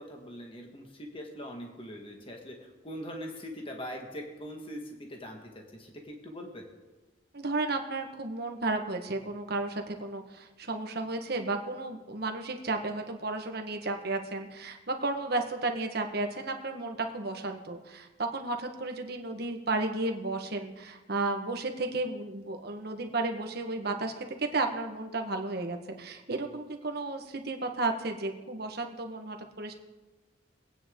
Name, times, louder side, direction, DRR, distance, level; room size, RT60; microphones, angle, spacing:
voice 1, 0.0-5.4 5.7-6.7, equal, 30° left, 2 dB, 1.7 m, -42 dB
voice 2, 7.3-29.7, right 2 dB, 55° right, 4 dB, 1.4 m, -33 dB
23.5 x 9.1 x 3.7 m, 1.2 s
head